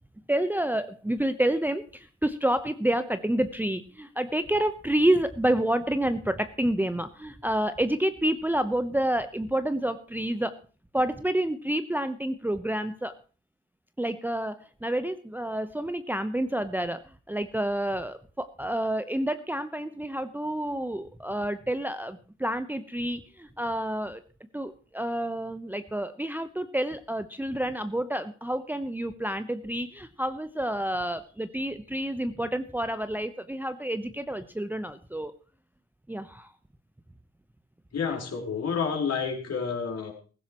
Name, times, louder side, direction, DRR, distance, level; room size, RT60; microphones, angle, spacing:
voice 1, 0.3-10.5 10.9-13.1 14.0-24.2 24.5-35.3 36.1-36.5, right 1 dB, 5° right, 10 dB, 0.9 m, -29 dB
voice 2, 37.9-40.1, left 6 dB, 45° left, 1 dB, 4.6 m, -29 dB
16.5 x 15.5 x 3.1 m, 0.37 s
hypercardioid pair, 55°, 34 cm